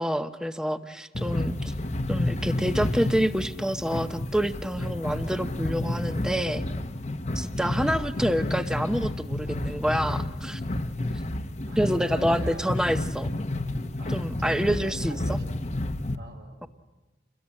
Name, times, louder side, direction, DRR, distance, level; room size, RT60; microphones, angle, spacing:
voice 1, 0.0-1.7 2.1-6.6 7.4-10.6 11.8-13.3 14.1-15.4, equal, 5° right, 9 dB, 0.8 m, -27 dB
sound 1, 1.1-16.1, left 1 dB, 40° left, 1.0 m, -30 dB
voice 2, 11.6-12.7 14.0-15.8 16.1-16.7, right 2 dB, 75° right, 2 dB, 6.4 m, -46 dB
28.0 x 21.5 x 8.7 m, 1.2 s
head